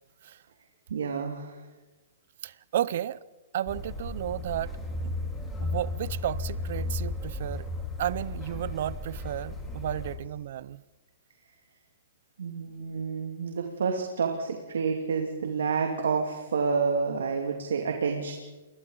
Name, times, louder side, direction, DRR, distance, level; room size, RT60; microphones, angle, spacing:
voice 1, 0.9-1.6 12.4-18.3, right 5 dB, 80° right, 2.5 m, -29 dB
voice 2, 2.4-3.2 3.5-4.7 5.0-5.1 5.6-7.7 8.0-10.8, right 11 dB, 60° right, 0.7 m, -33 dB
sound 1, 3.7-10.2, left 2 dB, 10° left, 4.3 m, -34 dB
29.5 x 22.5 x 4.0 m
hypercardioid pair, 135°, 0 cm